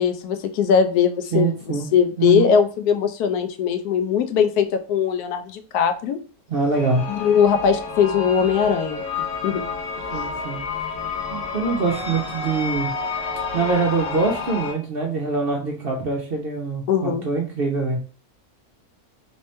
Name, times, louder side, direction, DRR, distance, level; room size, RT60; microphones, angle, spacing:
voice 1, 0.0-1.5 1.9-6.2 7.1-9.0 9.4-9.6 10.1-10.2 16.9-17.2, left 7 dB, 90° left, 8 dB, 1.1 m, -20 dB
voice 2, 1.3-1.9 2.2-2.5 6.5-7.0 10.1-10.6 11.3-12.9 13.5-18.0, right 4 dB, 55° right, 0 dB, 0.7 m, -24 dB
sound 1, 6.7-14.7, left 4 dB, 60° left, 1.0 m, -30 dB
3.3 x 2.9 x 3.1 m, 0.37 s
omnidirectional pair, 1.6 m